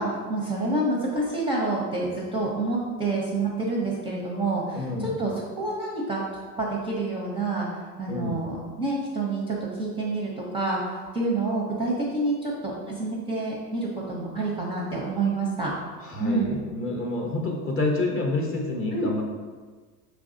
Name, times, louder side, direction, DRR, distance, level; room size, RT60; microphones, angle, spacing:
voice 1, 0.0-6.2 6.6-15.7 16.2-16.5 18.9-19.1, right 2 dB, 10° right, -3 dB, 0.5 m, -28 dB
voice 2, 4.7-5.2 8.1-8.4 16.0-19.2, left 2 dB, 25° left, 0 dB, 0.7 m, -28 dB
4.6 x 3.4 x 2.6 m, 1.5 s
supercardioid pair, 105°, 49 cm